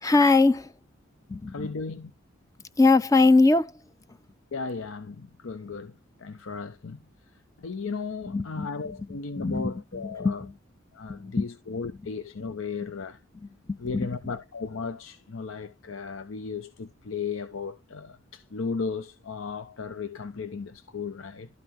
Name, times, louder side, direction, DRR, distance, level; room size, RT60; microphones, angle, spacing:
voice 1, 0.0-0.7 1.3-1.7 2.8-3.7 8.3-8.7 9.4-10.5 11.1-11.5 13.4-14.1, left 3 dB, 15° left, 0.5 m, -22 dB
voice 2, 1.5-2.1 4.5-5.9 6.2-7.0 7.6-10.4 10.9-13.2 13.8-21.5, left 4 dB, 80° left, 0.7 m, -35 dB
12.5 x 5.6 x 3.0 m
head